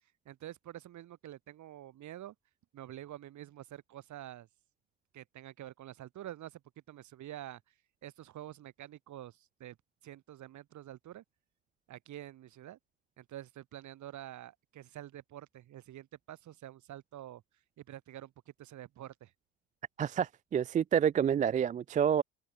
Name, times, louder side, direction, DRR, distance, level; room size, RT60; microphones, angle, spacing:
voice 1, 0.2-2.3 2.7-4.5 5.1-6.6 6.9-7.6 8.0-9.8 10.0-11.2 11.9-12.8 13.2-17.4 17.8-19.3, right 13 dB, 50° right, 2.5 m, -47 dB
voice 2, 20.0-22.2, right 8 dB, 20° right, 0.4 m, -28 dB
hypercardioid pair, 80°, 38 cm